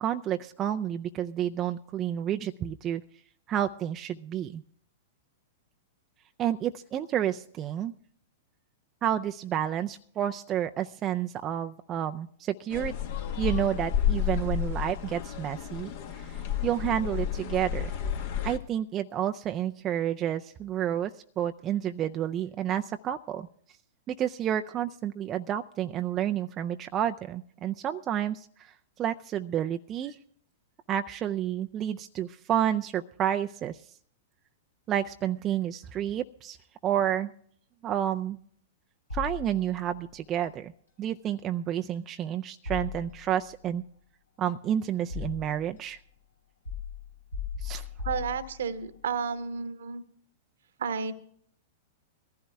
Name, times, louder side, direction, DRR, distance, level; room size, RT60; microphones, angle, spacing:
voice 1, 0.0-3.0 3.5-4.6 6.4-7.9 9.0-12.9 13.4-15.9 16.2-17.9 18.4-21.1 21.4-23.5 24.1-28.7 29.0-30.2 30.9-33.8 34.9-36.6 36.8-37.3 37.8-38.4 39.1-40.7 41.0-43.8 44.4-46.0 47.6-47.9, right 10 dB, 30° right, 7 dB, 0.4 m, -30 dB
sound 1, 12.7-18.6, left 9 dB, 55° left, 1.4 m, -31 dB
sound 2, 39.1-40.0 42.6-43.5 44.4-45.7 46.6-48.9, left 7 dB, 80° left, 3.1 m, -38 dB
voice 2, 48.0-50.0 50.8-51.1, right 6 dB, 65° right, 12 dB, 1.1 m, -32 dB
22.5 x 15.0 x 2.3 m, 0.62 s
figure-of-eight pair, 100°, 0 cm